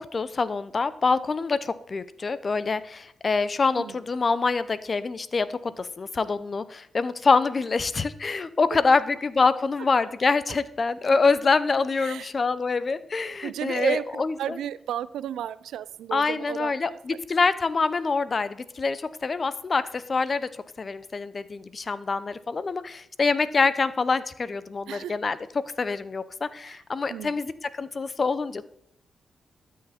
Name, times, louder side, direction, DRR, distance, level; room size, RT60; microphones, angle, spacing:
voice 1, 0.0-14.6 16.1-20.5 20.8-25.4 25.8-28.7, left 4 dB, 45° left, 15 dB, 0.7 m, -25 dB
voice 2, 12.0-12.7 13.4-17.0 24.9-25.2 26.7-26.8 27.1-27.4, right 10 dB, 90° right, 18 dB, 0.4 m, -33 dB
12.5 x 6.5 x 4.3 m, 0.74 s
cardioid pair, 55°, 0 cm